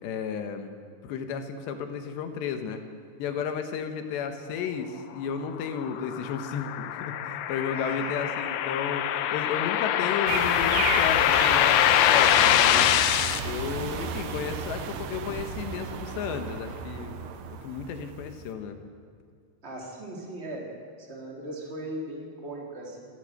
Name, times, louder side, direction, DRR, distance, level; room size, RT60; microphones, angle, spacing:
voice 1, 0.0-0.7 1.0-2.8 3.2-12.9 13.4-17.2 17.6-18.8, left 7 dB, 70° left, 7 dB, 3.3 m, -33 dB
sound 1, 5.6-13.4, left 11 dB, 90° left, 2.2 m, -23 dB
voice 2, 7.7-8.4 19.6-20.7 21.0-23.1, right 1 dB, 15° right, -2 dB, 2.8 m, -38 dB
sound 2, 10.3-18.5, right 6 dB, 80° right, 1.9 m, -34 dB
29.0 x 13.5 x 6.7 m, 2.2 s
omnidirectional pair, 5.6 m